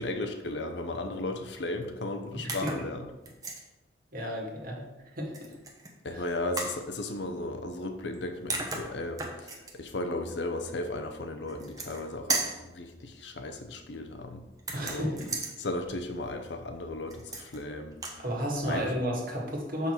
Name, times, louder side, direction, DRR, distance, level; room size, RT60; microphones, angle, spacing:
voice 1, 0.0-3.1 6.0-14.4 14.8-15.1 15.6-18.0 18.6-18.9, left 2 dB, 70° left, 6 dB, 0.8 m, -35 dB
voice 2, 2.3-2.7 4.1-4.8 5.1-5.3 6.1-6.2 14.7-15.4 18.2-19.9, equal, 50° right, -1 dB, 1.8 m, -32 dB
sound 1, 2.5-2.9 3.2-3.6 5.3-5.9 6.6-6.8 8.1-8.2 8.5-9.7 11.5-12.0 12.3-12.6 14.6-15.5 17.1-17.6 17.9-18.2, right 3 dB, 20° right, 1.0 m, -34 dB
6.6 x 5.7 x 4.5 m, 1.1 s
head